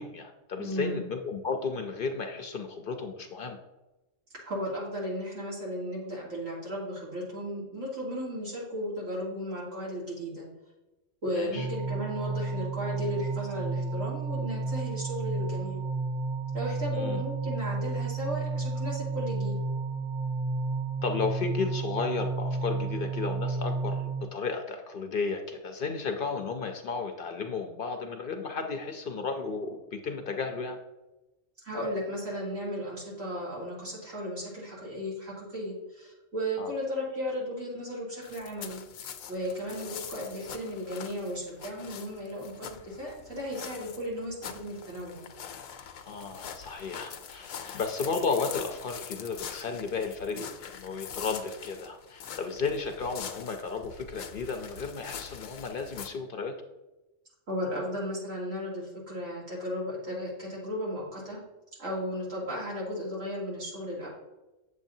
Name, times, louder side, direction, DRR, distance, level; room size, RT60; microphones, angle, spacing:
voice 1, 0.0-3.6 11.3-11.7 16.9-17.2 21.0-30.8 36.6-36.7 46.1-56.5, left 4 dB, 55° left, 5 dB, 0.7 m, -33 dB
voice 2, 0.6-1.0 4.4-10.5 11.2-15.8 16.5-19.6 31.6-38.8 39.3-45.3 57.5-61.4 61.8-64.1, equal, 80° right, -6 dB, 3.0 m, -35 dB
sound 1, 11.6-24.2, right 4 dB, 45° right, 0.6 m, -32 dB
sound 2, 38.2-56.1, left 8 dB, 85° left, 1.0 m, -43 dB
7.8 x 7.3 x 2.7 m, 1.0 s
omnidirectional pair, 1.3 m